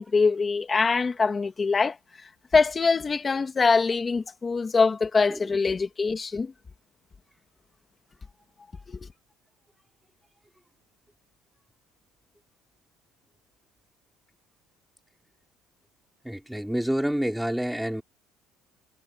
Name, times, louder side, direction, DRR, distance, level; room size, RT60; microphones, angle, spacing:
voice 1, 0.0-2.0 2.5-6.5 8.9-9.1, left 4 dB, 15° left, 2.3 m, -23 dB
voice 2, 16.2-18.0, equal, ahead, 3.0 m, -28 dB
cardioid pair, 170°, 0 cm